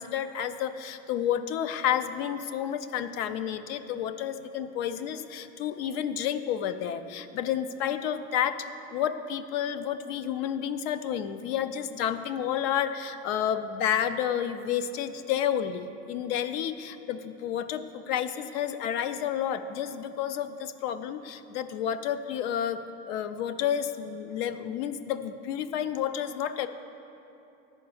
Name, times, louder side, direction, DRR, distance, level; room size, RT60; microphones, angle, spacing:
voice 1, 0.0-8.6 8.9-22.8 23.1-26.7, left 9 dB, 80° left, 11 dB, 0.6 m, -30 dB
10.5 x 4.6 x 7.0 m, 2.9 s
cardioid pair, 150°, 30 cm